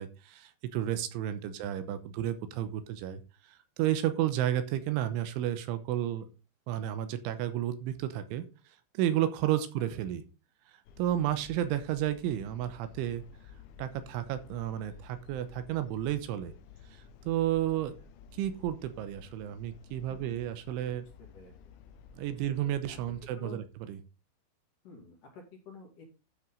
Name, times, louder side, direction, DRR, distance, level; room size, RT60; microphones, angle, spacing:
voice 1, 0.0-6.3 6.7-8.5 8.9-10.2 10.7-13.2 13.8-16.5 16.9-17.9 18.3-21.0 22.2-23.6 23.9-24.0, right 12 dB, 80° right, 10 dB, 3.2 m, -32 dB
sound 1, 10.9-23.3, left 7 dB, 85° left, 3.3 m, -53 dB
voice 2, 20.1-20.4 20.8-21.0 21.3-21.5 22.3-23.0 23.4-23.6 24.8-26.0, left 4 dB, 50° left, 1 dB, 3.5 m, -51 dB
12.5 x 6.0 x 3.8 m, 0.31 s
omnidirectional pair, 5.6 m